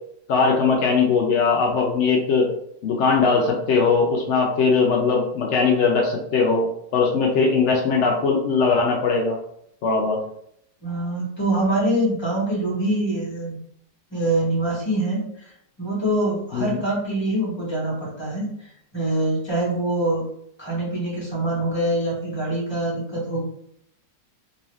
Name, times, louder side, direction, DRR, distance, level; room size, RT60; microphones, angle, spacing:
voice 1, 0.3-2.5 2.8-6.7 6.9-9.4 9.8-10.2 16.5-16.8, left 4 dB, 90° left, 0 dB, 0.6 m, -20 dB
voice 2, 10.8-13.6 14.1-18.5 18.9-20.2 20.6-23.4, right 1 dB, 15° left, -7 dB, 1.3 m, -24 dB
2.7 x 2.7 x 3.0 m, 0.73 s
omnidirectional pair, 1.8 m